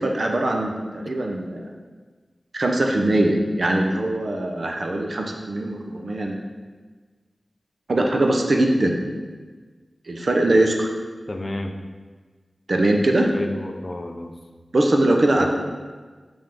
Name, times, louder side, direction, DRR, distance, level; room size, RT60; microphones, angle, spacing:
voice 1, 0.0-1.7 2.5-6.4 7.9-9.0 10.1-10.9 12.7-13.3 14.7-15.5, right 1 dB, 55° right, 2 dB, 0.7 m, -21 dB
voice 2, 11.3-11.7 13.3-14.3 15.3-15.5, left 1 dB, 35° left, 5 dB, 0.5 m, -30 dB
5.6 x 3.6 x 5.3 m, 1.4 s
wide cardioid pair, 75°, 0 cm